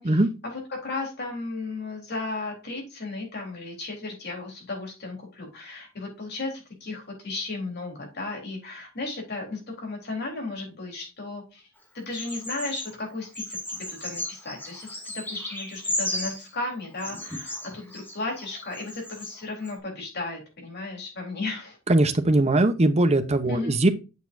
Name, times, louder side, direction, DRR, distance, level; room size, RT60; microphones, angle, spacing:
voice 1, 0.0-11.7 11.9-21.8 23.4-23.8, left 3 dB, 55° left, 1 dB, 4.0 m, -35 dB
Bird vocalization bird call bird song, 12.1-12.9 13.3-16.5 17.0-19.3 19.6-19.7, left 1 dB, 10° left, 2.2 m, -34 dB
voice 2, 21.9-23.9, right 2 dB, 35° right, 9 dB, 0.9 m, -20 dB
8.2 x 6.7 x 2.7 m, 0.29 s
head